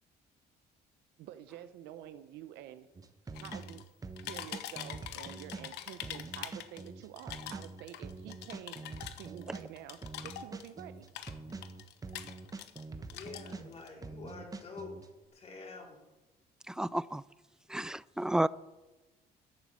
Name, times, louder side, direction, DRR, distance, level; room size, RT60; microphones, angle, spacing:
voice 1, 1.2-2.9 3.4-3.8 4.2-8.8 9.2-11.1, right 11 dB, 85° right, 11 dB, 0.8 m, -48 dB
sound 1, 2.9-15.1, right 3 dB, 20° right, 1.1 m, -45 dB
sound 2, 3.3-3.9 4.2-6.9 7.2-10.8 11.1-12.8 13.1-13.9, left 12 dB, 80° left, 1.0 m, -44 dB
voice 2, 13.0-14.9 15.3-16.0, left 4 dB, 40° left, -1 dB, 4.6 m, -47 dB
voice 3, 16.7-17.2 17.7-18.5, right 1 dB, 5° right, 19 dB, 0.3 m, -31 dB
12.0 x 7.2 x 8.4 m, 1.1 s
cardioid pair, 110°, 17 cm